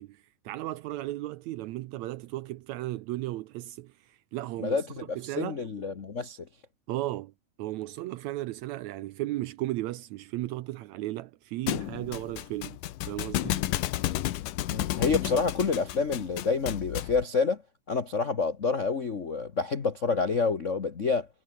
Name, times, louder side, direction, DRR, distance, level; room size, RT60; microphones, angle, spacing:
voice 1, 0.0-4.8 5.2-5.6 6.9-7.3 7.6-12.8 13.1-13.6, right 16 dB, 75° right, 1.8 m, -35 dB
voice 2, 4.6-6.5 14.7-17.6 17.9-21.3, left 4 dB, 55° left, 0.8 m, -28 dB
Thump thud, 11.7-17.2, left 14 dB, 85° left, 2.6 m, -32 dB
omnidirectional pair, 3.6 m